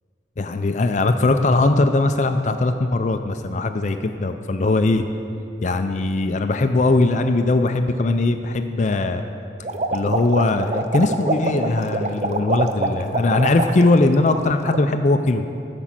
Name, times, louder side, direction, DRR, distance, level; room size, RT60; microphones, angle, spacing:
voice 1, 0.4-5.0 5.6-9.2 9.9-15.5, left 2 dB, 40° left, 7 dB, 0.4 m, -20 dB
sound 1, 9.6-14.0 14.3-14.8, right 2 dB, 35° right, 0.5 m, -25 dB
14.0 x 6.0 x 7.4 m, 2.7 s
head